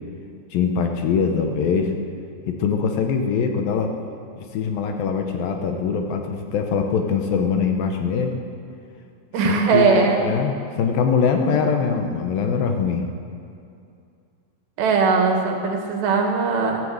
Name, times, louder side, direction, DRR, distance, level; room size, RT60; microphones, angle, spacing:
voice 1, 0.5-1.9 2.5-4.0 4.4-8.3 9.4-13.1, left 6 dB, 70° left, 4 dB, 2.5 m, -22 dB
voice 2, 9.3-10.2 14.8-16.8, right 5 dB, 85° right, 2 dB, 3.9 m, -19 dB
14.0 x 13.0 x 7.9 m, 2.5 s
omnidirectional pair, 4.7 m